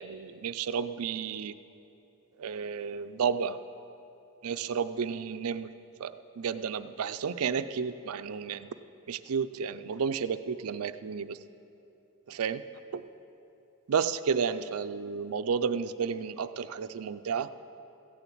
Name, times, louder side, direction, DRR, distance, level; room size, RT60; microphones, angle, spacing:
voice 1, 0.0-1.5 2.4-3.6 4.4-5.7 6.0-8.7 9.1-11.4 12.3-12.6 12.9-13.0 13.9-17.5, right 6 dB, 75° right, 12 dB, 0.4 m, -32 dB
15.0 x 7.0 x 8.4 m, 2.9 s
head